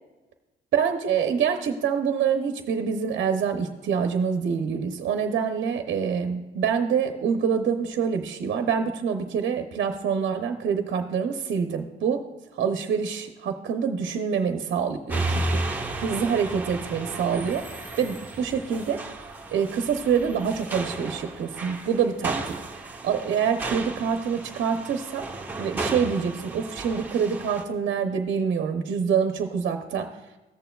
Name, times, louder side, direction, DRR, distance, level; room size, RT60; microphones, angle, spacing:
voice 1, 0.7-12.2 12.5-15.6 16.0-17.6 18.0-19.0 19.5-22.5 23.0-25.2 25.6-30.1, right 7 dB, 65° right, 6 dB, 0.7 m, -26 dB
sound 1, 15.1-27.6, right 2 dB, 10° right, 1.2 m, -33 dB
14.5 x 6.8 x 2.3 m, 1.1 s
cardioid pair, 90°, 20 cm